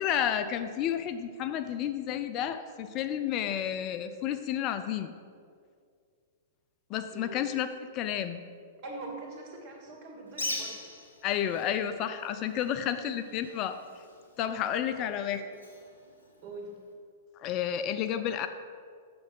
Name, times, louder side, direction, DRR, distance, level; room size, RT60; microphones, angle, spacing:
voice 1, 0.0-5.1 6.9-7.7 7.9-8.4 11.2-13.8 14.4-15.4 17.4-18.5, left 10 dB, 35° left, 10 dB, 0.5 m, -31 dB
voice 2, 8.8-10.8 12.6-13.2 14.7-15.4 16.4-16.8, right 2 dB, 45° right, 0 dB, 2.6 m, -44 dB
Bird, 10.3-16.9, left 2 dB, 80° left, 1.7 m, -43 dB
7.8 x 6.8 x 6.2 m, 2.2 s
figure-of-eight pair, 110°, 0 cm